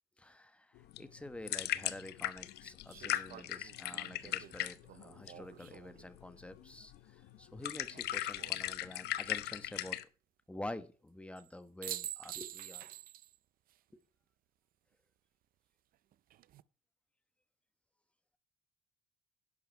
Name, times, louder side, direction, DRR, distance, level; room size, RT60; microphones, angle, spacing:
voice 1, 0.2-10.0 10.5-12.8 13.9-14.0, left 1 dB, 5° left, 1.2 m, -48 dB
sound 1, 0.7-10.0, left 14 dB, 75° left, 1.0 m, -39 dB
sound 2, 1.4-1.5 2.9-6.1 7.9-8.6 11.4-11.5 11.8-13.4 13.7-13.8 16.1-16.6, right 13 dB, 60° right, 0.5 m, -47 dB
11.5 x 8.0 x 4.5 m
cardioid pair, 110°, 17 cm